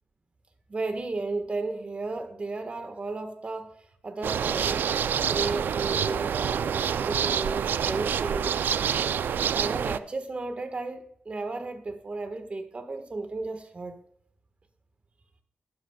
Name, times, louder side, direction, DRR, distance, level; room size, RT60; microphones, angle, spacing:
voice 1, 0.7-3.7 4.0-4.8 5.3-8.6 9.5-13.9, right 3 dB, 40° right, 1.4 m, -34 dB
sound 1, 4.2-10.0, right 8 dB, 80° right, 0.3 m, -27 dB
11.5 x 11.0 x 2.3 m
cardioid pair, 90°, 3 cm